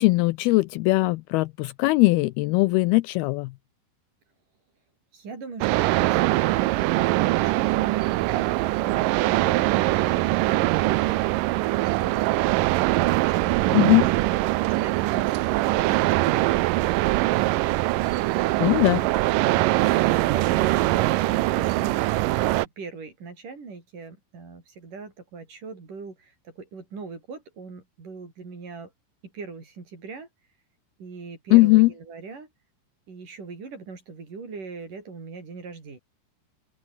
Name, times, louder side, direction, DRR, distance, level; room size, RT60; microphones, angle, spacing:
voice 1, 0.0-3.5 13.7-14.1 18.6-19.0 31.5-31.9, left 21 dB, 80° left, 2.3 m, -19 dB
voice 2, 5.1-11.2 11.6-12.3 14.6-16.7 19.7-28.9 29.3-30.3 31.0-32.5 33.1-36.0, right 4 dB, 50° right, 7.1 m, -41 dB
sound 1, 5.6-22.7, right 18 dB, 90° right, 1.9 m, -22 dB
open air
omnidirectional pair, 4.7 m